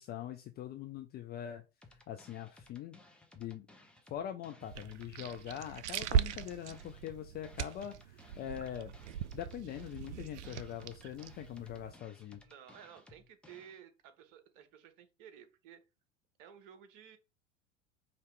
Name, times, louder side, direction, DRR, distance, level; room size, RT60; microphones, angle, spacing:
voice 1, 0.0-1.6 2.1-3.0 3.3-3.7 4.1-8.9 9.3-12.4, left 10 dB, 25° left, 0.5 m, -43 dB
sound 1, 1.8-13.8, left 2 dB, 5° left, 0.8 m, -60 dB
sound 2, 4.6-11.9, right 9 dB, 70° right, 0.5 m, -39 dB
voice 2, 12.4-15.8 16.4-17.2, right 9 dB, 50° right, 1.1 m, -55 dB
4.9 x 2.8 x 3.3 m
figure-of-eight pair, 80°, 36 cm